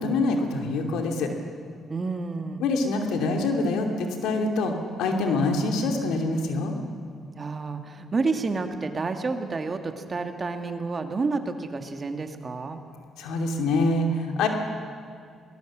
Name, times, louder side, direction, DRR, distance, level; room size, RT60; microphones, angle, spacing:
voice 1, 0.0-1.3 2.6-6.8 13.2-14.5, left 2 dB, 90° left, 3 dB, 2.7 m, -25 dB
voice 2, 1.9-2.6 7.4-12.8, right 3 dB, 35° right, 6 dB, 2.0 m, -29 dB
21.5 x 19.5 x 7.5 m, 2.2 s
cardioid pair, 90°, 0 cm